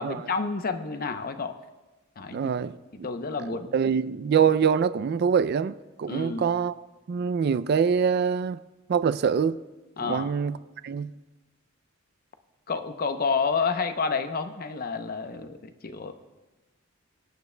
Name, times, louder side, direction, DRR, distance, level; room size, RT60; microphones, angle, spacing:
voice 1, 0.0-1.6 2.2-2.4 3.0-3.9 6.1-6.5 10.0-10.3 12.7-16.1, left 5 dB, 45° left, 0.7 m, -29 dB
voice 2, 2.3-3.1 3.5-8.6 8.9-9.6 10.0-10.6 10.8-11.1, right 6 dB, 50° right, 0.3 m, -25 dB
23.5 x 9.4 x 2.2 m
head